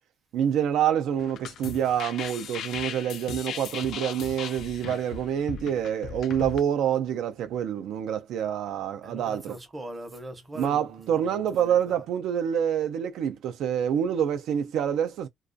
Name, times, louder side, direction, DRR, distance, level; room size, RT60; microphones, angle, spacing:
voice 1, 0.3-9.5 10.6-15.3, right 9 dB, 80° right, 0.3 m, -27 dB
sound 1, 1.2-6.6, left 8 dB, 65° left, 0.3 m, -38 dB
voice 2, 9.0-12.0, right 1 dB, 15° right, 0.6 m, -41 dB
2.3 x 2.2 x 2.5 m
cardioid pair, 175°, 0 cm